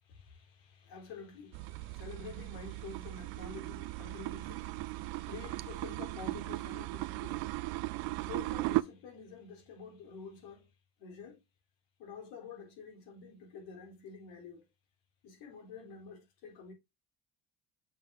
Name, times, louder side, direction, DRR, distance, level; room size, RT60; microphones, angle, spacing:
voice 1, 0.0-10.7 11.0-11.4 12.0-14.7 15.2-16.7, left 5 dB, 85° left, 3.7 m, -49 dB
sound 1, 1.5-8.8, right 19 dB, 85° right, 0.6 m, -37 dB
7.0 x 5.4 x 3.6 m
cardioid pair, 105°, 34 cm